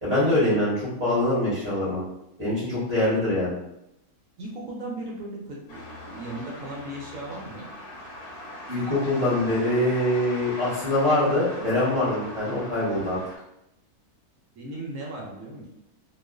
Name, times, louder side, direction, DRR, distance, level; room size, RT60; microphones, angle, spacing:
voice 1, 0.0-2.0 2.4-3.5 8.7-13.2, left 1 dB, 25° right, -10 dB, 0.7 m, -24 dB
voice 2, 4.4-7.6 14.6-15.6, right 1 dB, 70° right, -2 dB, 0.9 m, -37 dB
sound 1, 5.7-13.4, left 1 dB, 75° left, 1.1 m, -40 dB
2.4 x 2.4 x 2.2 m, 0.85 s
omnidirectional pair, 1.6 m